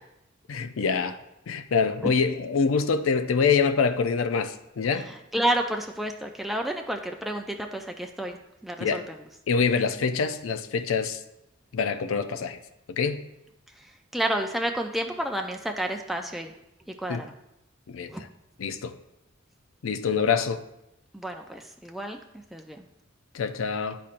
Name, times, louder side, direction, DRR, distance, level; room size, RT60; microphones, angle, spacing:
voice 1, 0.5-1.2 1.5-5.1 8.8-9.0 9.5-11.2 11.7-12.6 12.9-13.2 17.1-17.2 17.9-18.1 18.6-18.9 19.8-20.6 23.3-24.0, left 5 dB, 80° left, 0.5 m, -25 dB
voice 2, 5.1-8.4 8.6-9.1 14.1-16.5 17.0-17.3 18.1-18.2 21.1-22.2 22.5-22.8, right 1 dB, ahead, 0.3 m, -30 dB
11.5 x 4.2 x 2.5 m
head